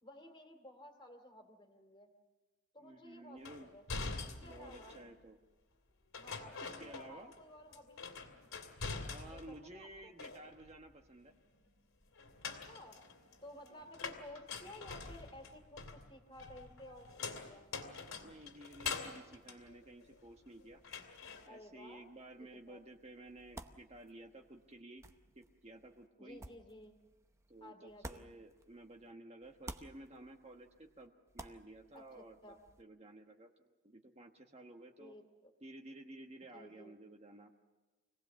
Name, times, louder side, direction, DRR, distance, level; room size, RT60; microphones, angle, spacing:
voice 1, 0.0-2.1 2.7-3.8 4.4-5.0 6.2-8.1 9.3-10.1 12.4-17.7 21.5-22.1 22.4-22.8 26.2-27.0 27.6-28.3 31.9-32.6 35.0-35.5 36.5-37.0, left 1 dB, 25° left, 5 dB, 2.4 m, -55 dB
voice 2, 2.8-3.7 4.4-5.4 6.6-7.3 9.1-11.3 13.7-14.2 18.2-20.8 21.4-25.0 25.3-26.4 27.5-35.1 35.6-37.5, right 1 dB, 30° right, 3 dB, 1.2 m, -54 dB
sound 1, 3.4-5.1 6.1-7.4 7.7-9.6 9.9-10.8 12.2-20.5 20.8-21.5, left 4 dB, 85° left, 2.7 m, -45 dB
sound 2, 17.9-29.1 29.4-32.8, right 2 dB, 15° right, 0.8 m, -56 dB
25.5 x 18.0 x 7.2 m, 1.2 s
head